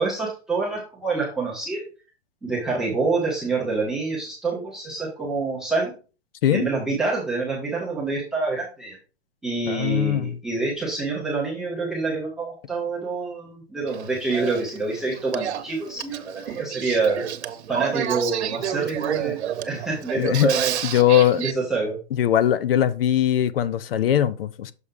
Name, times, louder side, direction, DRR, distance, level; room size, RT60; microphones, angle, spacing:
voice 1, 0.0-1.8 2.4-5.9 6.5-9.0 9.4-17.3 17.7-20.8 21.4-22.0, right 3 dB, ahead, 0.4 m, -26 dB
voice 2, 9.7-10.4 20.1-20.6 20.8-21.4 22.1-24.7, left 11 dB, 60° left, 0.7 m, -20 dB
Male speech man speaking / Female speech woman speaking / Conversation, 13.9-21.5, right 10 dB, 85° right, 1.0 m, -30 dB
6.5 x 5.5 x 3.6 m
hypercardioid pair, 170°, 32 cm